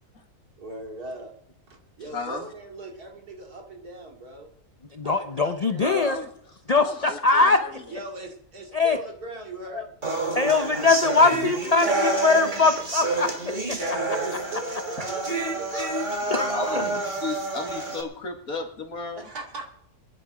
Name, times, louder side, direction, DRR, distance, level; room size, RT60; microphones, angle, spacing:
voice 1, 0.6-1.3 1.7-4.5 5.0-5.8 7.9-9.9 13.9-16.9 19.2-19.7, right 2 dB, 75° right, 1 dB, 2.9 m, -39 dB
voice 2, 2.0-2.5 5.8-6.3 6.8-7.9 13.8-13.9 16.3-19.3, left 3 dB, 65° left, 3 dB, 2.4 m, -34 dB
voice 3, 4.9-6.2 6.7-7.6 8.7-9.0 9.7-9.8 10.3-13.3 13.7-13.9 16.3-16.9, left 3 dB, 45° left, 7 dB, 0.5 m, -21 dB
sound 1, 10.0-18.0, right 2 dB, 30° right, 2.0 m, -28 dB
20.5 x 10.5 x 4.9 m, 0.73 s
omnidirectional pair, 1.6 m